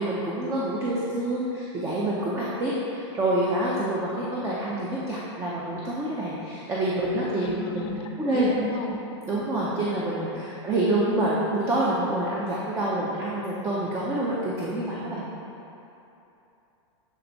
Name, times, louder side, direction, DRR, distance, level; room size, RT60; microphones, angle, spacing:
voice 1, 0.0-8.5 9.3-15.3, right 1 dB, 20° right, -6 dB, 0.6 m, -27 dB
voice 2, 7.4-8.0 8.3-9.0 10.7-11.0, left 3 dB, 35° left, 2 dB, 0.6 m, -33 dB
7.5 x 3.4 x 4.0 m, 2.9 s
supercardioid pair, 140°, 15 cm